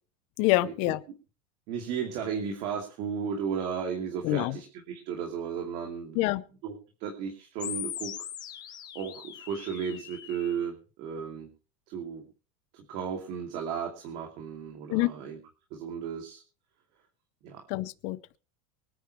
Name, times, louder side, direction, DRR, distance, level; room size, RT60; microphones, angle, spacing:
voice 1, 0.4-1.0 4.2-4.6 6.1-6.4 14.9-15.1 17.7-18.4, left 18 dB, 40° left, 0.7 m, -26 dB
voice 2, 1.7-6.2 6.6-6.7 7.0-8.1 8.9-11.5 11.9-12.2 12.7-15.4 15.7-16.4 17.4-17.6, right 7 dB, 40° right, 2.7 m, -34 dB
sound 1, 7.6-10.6, left 10 dB, 25° left, 1.2 m, -40 dB
24.5 x 9.6 x 3.2 m
supercardioid pair, 180°, 18 cm